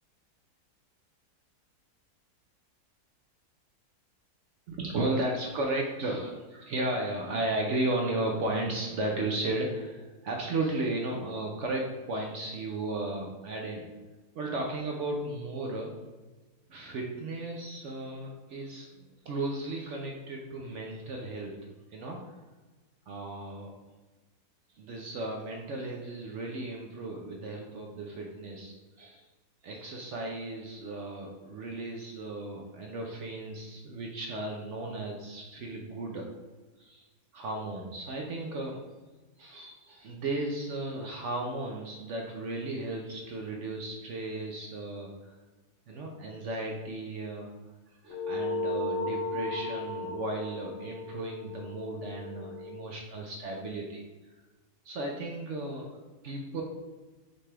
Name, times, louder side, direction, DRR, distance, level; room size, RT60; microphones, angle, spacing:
voice 1, 4.7-13.9 14.3-15.9 16.7-21.5 21.9-22.3 23.1-23.7 24.7-29.2 29.6-36.2 36.8-37.1 37.3-38.8 39.4-45.4 45.9-47.5 48.0-54.0 54.8-56.6, right 2 dB, 70° right, 0 dB, 0.7 m, -35 dB
sound 1, 48.1-52.9, left 2 dB, 55° left, 0.8 m, -35 dB
6.5 x 2.3 x 3.3 m, 1.2 s
omnidirectional pair, 1.7 m